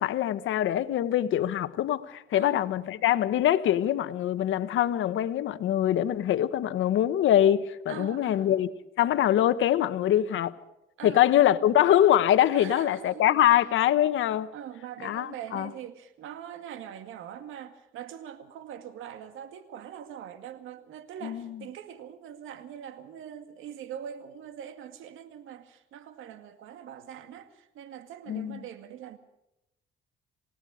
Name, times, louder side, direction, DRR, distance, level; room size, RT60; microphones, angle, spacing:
voice 1, 0.0-8.7 9.0-10.5 11.0-14.5 15.0-15.7 21.2-21.6 28.3-28.6, left 11 dB, 80° left, 1.2 m, -24 dB
voice 2, 7.9-8.7 11.0-11.2 12.5-13.4 14.3-29.2, right 9 dB, 85° right, 2.1 m, -42 dB
28.0 x 18.5 x 5.0 m
cardioid pair, 90°, 20 cm